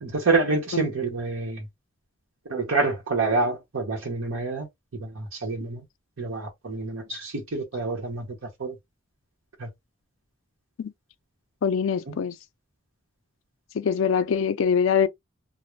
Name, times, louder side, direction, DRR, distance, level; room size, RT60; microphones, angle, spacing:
voice 1, 0.0-1.7 2.5-4.7 5.0-5.8 6.2-8.3 8.6-8.7 9.6-9.7, right 3 dB, 85° right, 0.8 m, -27 dB
voice 2, 11.6-12.4 13.7-15.1, left 6 dB, 80° left, 0.4 m, -23 dB
2.4 x 2.0 x 3.0 m
head